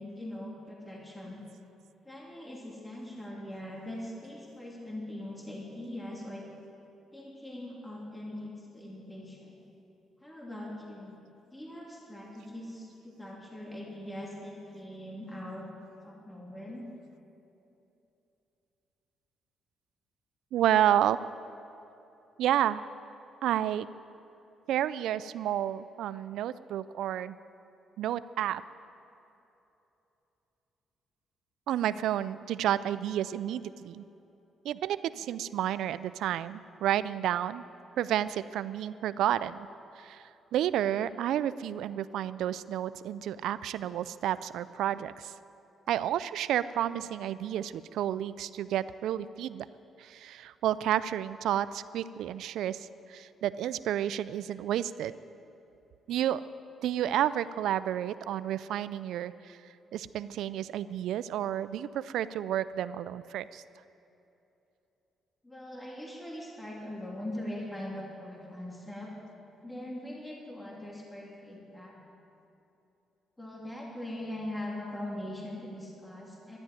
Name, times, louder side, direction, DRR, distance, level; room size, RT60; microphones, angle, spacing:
voice 1, 0.0-1.4 2.0-6.5 7.1-9.6 10.2-11.1 11.5-15.7 16.0-16.9 65.4-69.1 69.6-71.9 73.4-76.6, left 1 dB, 10° left, -3 dB, 2.8 m, -41 dB
voice 2, 20.5-21.2 22.4-22.8 23.4-23.9 24.7-27.4 28.0-28.6 31.7-34.0 34.6-37.6 38.0-39.7 40.0-40.2 40.5-45.3 45.9-49.7 50.0-55.1 56.1-56.4 56.8-59.6 59.9-63.6, right 11 dB, 80° right, 15 dB, 0.3 m, -30 dB
12.0 x 11.0 x 9.0 m, 2.9 s
cardioid pair, 90°, 0 cm